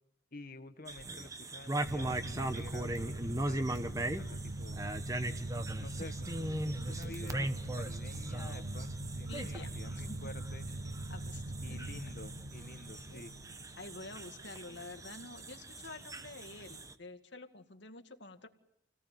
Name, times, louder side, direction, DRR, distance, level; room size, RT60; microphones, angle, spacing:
voice 1, 0.3-4.8 5.8-10.7 11.6-13.4, left 2 dB, 45° left, 9 dB, 1.6 m, -50 dB
sound 1, 0.9-16.9, right 1 dB, 15° right, 1.1 m, -40 dB
sound 2, 1.8-15.1, right 1 dB, 75° right, 1.3 m, -42 dB
voice 2, 9.3-10.3 11.1-11.4 11.7-11.8 13.1-13.3 13.8-18.5, left 2 dB, 65° left, 7 dB, 2.1 m, -49 dB
28.5 x 18.5 x 9.3 m, 0.82 s
head